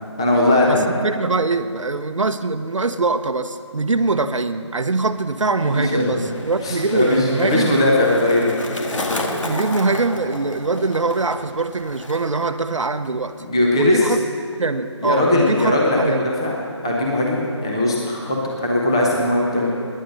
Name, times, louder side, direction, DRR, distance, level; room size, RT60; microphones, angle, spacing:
voice 1, 0.2-0.9 5.7-6.2 6.6-8.5 13.4-14.1 15.0-16.6 16.8-19.7, left 1 dB, 10° left, -3 dB, 0.8 m, -19 dB
voice 2, 0.7-7.8 9.4-13.4 13.7-14.2 14.6-16.3, right 3 dB, 90° right, 7 dB, 0.9 m, -23 dB
Skateboard, 5.0-12.5 12.8-13.3, left 1 dB, 90° left, 2.0 m, -32 dB
16.0 x 10.5 x 6.4 m, 2.5 s
figure-of-eight pair, 175°, 16 cm